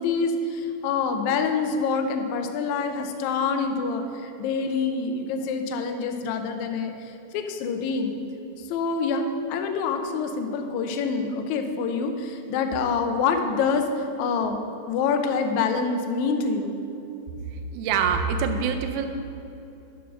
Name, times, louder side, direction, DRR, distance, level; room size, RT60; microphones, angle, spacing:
voice 1, 0.0-6.9 7.3-8.1 8.7-14.6 14.9-16.7, left 5 dB, 85° left, 5 dB, 1.7 m, -26 dB
voice 2, 17.7-19.1, right 6 dB, 85° right, 6 dB, 1.8 m, -24 dB
7.0 x 6.0 x 6.2 m, 2.8 s
omnidirectional pair, 4.1 m